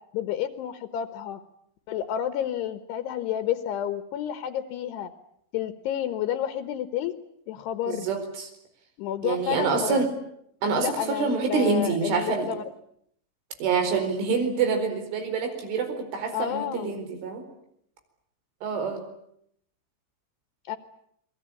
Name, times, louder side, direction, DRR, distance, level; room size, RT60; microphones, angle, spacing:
voice 1, 0.1-1.4 1.9-5.1 5.5-7.1 7.5-8.1 9.0-10.1 10.8-12.6 16.3-17.0 20.7-20.8, left 10 dB, 70° left, 11 dB, 3.0 m, -30 dB
voice 2, 7.9-8.5 9.2-10.1 10.6-12.5 13.6-17.4 18.6-19.0, right 5 dB, 80° right, 7 dB, 6.9 m, -26 dB
28.5 x 22.0 x 8.6 m, 0.72 s
omnidirectional pair, 5.5 m